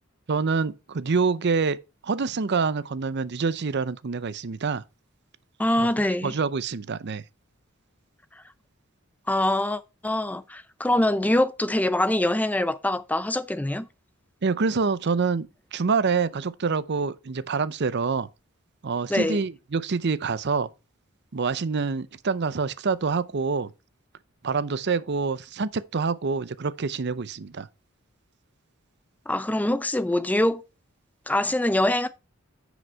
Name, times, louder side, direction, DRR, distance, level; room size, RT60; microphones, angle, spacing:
voice 1, 0.3-1.8 2.0-4.8 6.2-7.2 14.4-18.3 18.8-20.7 21.3-23.7 24.4-27.7, right 4 dB, 55° right, 0.6 m, -26 dB
voice 2, 5.6-6.4 8.3-8.4 9.3-13.9 19.1-19.4 29.3-30.6 31.3-32.1, left 1 dB, 5° left, 0.4 m, -24 dB
9.7 x 5.1 x 4.5 m
head